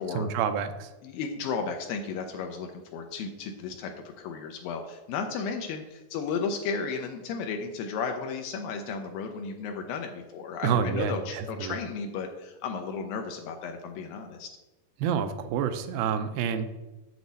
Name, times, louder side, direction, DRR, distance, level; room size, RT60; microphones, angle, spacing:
voice 1, 0.1-0.9 10.6-11.8 15.0-16.7, right 7 dB, 85° right, 9 dB, 2.4 m, -28 dB
voice 2, 1.0-14.5, left 5 dB, 80° left, 4 dB, 2.4 m, -34 dB
7.8 x 7.2 x 4.0 m, 1.1 s
omnidirectional pair, 4.3 m